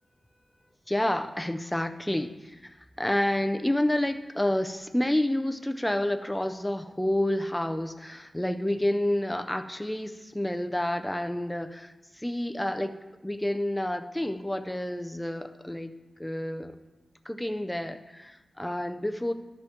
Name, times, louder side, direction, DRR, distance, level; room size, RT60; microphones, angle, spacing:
voice 1, 0.9-12.9 13.2-15.9 16.2-16.8 17.3-19.3, left 1 dB, 5° left, 7 dB, 0.4 m, -29 dB
12.0 x 4.9 x 3.7 m, 1.1 s
wide cardioid pair, 180°, 0 cm